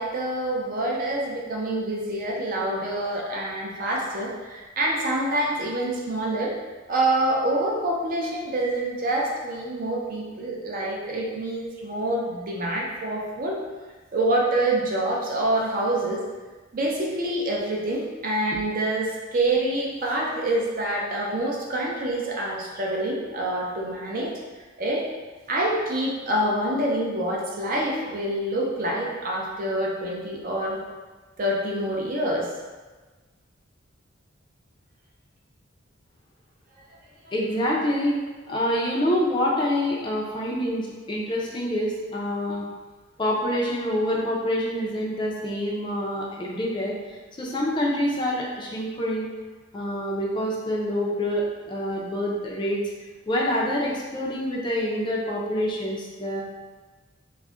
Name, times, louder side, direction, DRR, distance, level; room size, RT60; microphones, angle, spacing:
voice 1, 0.0-6.5 6.9-13.6 14.1-16.2 16.7-24.3 24.8-25.0 25.5-30.8 31.4-32.5, right 1 dB, 45° right, -2 dB, 0.5 m, -26 dB
voice 2, 37.3-38.2 38.5-42.7 43.2-46.9 47.4-49.3 49.7-52.8 53.3-56.4, equal, 25° left, -4 dB, 0.4 m, -26 dB
2.3 x 2.1 x 3.6 m, 1.3 s
head